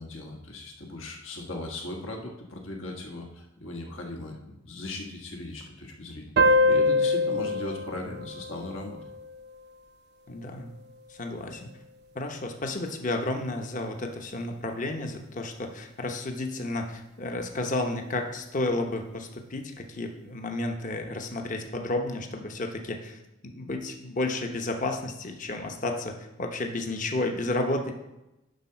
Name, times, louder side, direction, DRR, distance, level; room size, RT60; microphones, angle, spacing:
voice 1, 0.0-9.0, left 2 dB, 75° left, 1 dB, 1.6 m, -38 dB
sound 1, 6.4-9.5, left 2 dB, 55° right, 0.5 m, -24 dB
voice 2, 10.3-10.7 11.1-11.7 12.1-23.2 23.5-26.1 26.4-27.9, left 2 dB, 40° left, 4 dB, 0.9 m, -32 dB
10.5 x 4.0 x 5.7 m, 0.94 s
head